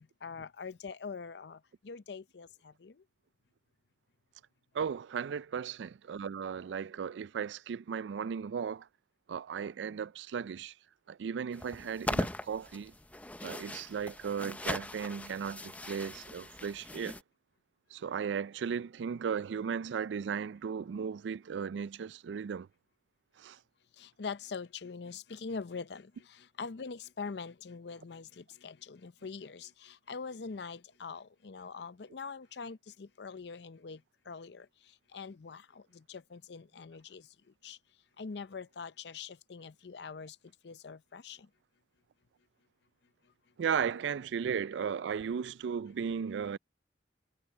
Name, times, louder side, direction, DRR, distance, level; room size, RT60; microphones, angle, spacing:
voice 1, 0.0-3.0 9.8-9.9 24.0-37.3 37.6-37.8 38.2-40.4 40.6-41.5, left 5 dB, 65° left, 0.6 m, -44 dB
voice 2, 4.7-8.9 9.3-10.7 11.1-12.9 13.4-17.2 17.9-22.7 23.4-23.6 43.6-46.6, right 7 dB, 85° right, 0.4 m, -36 dB
sound 1, 11.5-17.2, left 1 dB, 10° left, 0.7 m, -39 dB
head